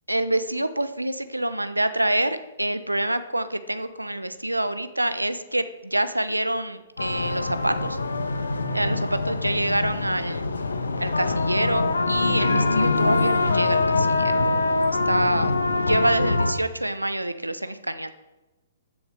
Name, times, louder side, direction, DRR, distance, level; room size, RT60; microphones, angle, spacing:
voice 1, 0.1-8.0 8.7-10.5 11.0-14.5 15.0-15.5 15.8-18.1, right 1 dB, 90° right, 11 dB, 1.0 m, -26 dB
sound 1, 7.0-16.5, left 3 dB, 70° left, 1.4 m, -24 dB
16.0 x 10.0 x 4.8 m, 1.1 s
figure-of-eight pair, 120°, 0 cm